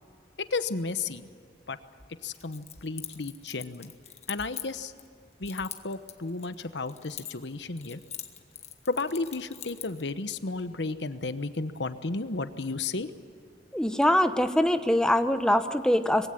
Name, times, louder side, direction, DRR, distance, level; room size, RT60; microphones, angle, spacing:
voice 1, 0.5-1.3 1.7-1.8 2.2-3.9 4.3-4.9 5.4-8.0 8.9-13.1, left 3 dB, 85° left, 11 dB, 1.1 m, -33 dB
Keys jangling, 2.3-5.1 5.4-7.5 7.8-10.0, left 10 dB, 40° left, 1.4 m, -42 dB
voice 2, 13.7-16.3, left 1 dB, 5° left, 9 dB, 0.9 m, -23 dB
21.5 x 16.5 x 9.9 m, 2.4 s
head